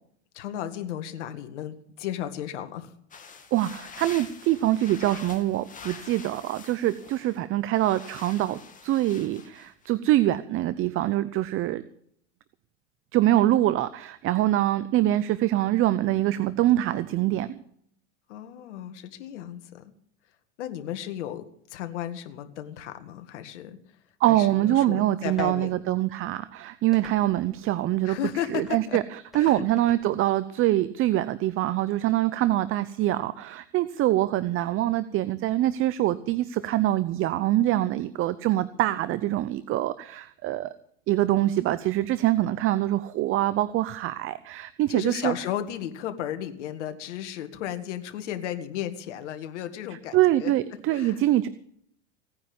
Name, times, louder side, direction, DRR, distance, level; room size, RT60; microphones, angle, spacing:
voice 1, 0.3-2.9 18.3-19.8 20.6-23.8 24.3-25.8 28.1-29.0 29.3-29.6 44.9-50.5 50.9-51.2, left 11 dB, 75° left, 8 dB, 1.9 m, -34 dB
sound 1, 3.1-7.4 7.7-9.9, left 5 dB, 20° left, 2.5 m, -45 dB
voice 2, 3.5-11.8 13.1-17.6 24.2-28.2 28.5-29.0 29.3-40.7 41.1-45.3 50.1-51.5, right 14 dB, 35° right, 15 dB, 0.7 m, -24 dB
sound 2, 25.3-25.6 26.9-27.5 28.5-28.8 29.3-30.0, equal, ahead, 5.2 m, -46 dB
17.5 x 9.7 x 7.1 m, 0.67 s
supercardioid pair, 115°, 35 cm